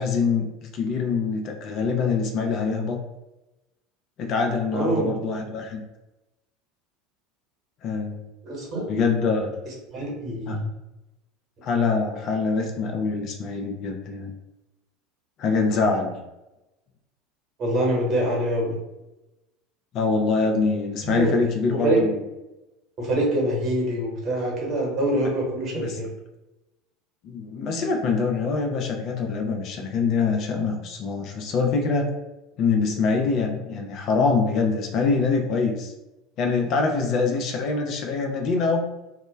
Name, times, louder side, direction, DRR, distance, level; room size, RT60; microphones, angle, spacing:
voice 1, 0.0-3.0 4.2-5.8 7.8-8.2 8.9-9.5 10.5-10.6 11.6-14.3 15.4-16.2 19.9-22.2 25.7-26.0 27.2-32.1 32.6-35.9 36.4-38.9, left 4 dB, 45° left, 3 dB, 0.4 m, -24 dB
voice 2, 4.7-5.1 8.4-8.9 9.9-10.7 17.6-18.8 21.0-21.4 21.7-22.0 23.0-26.1, right 1 dB, 40° right, -2 dB, 1.0 m, -25 dB
2.1 x 2.1 x 3.2 m, 0.99 s
figure-of-eight pair, 75°, 0 cm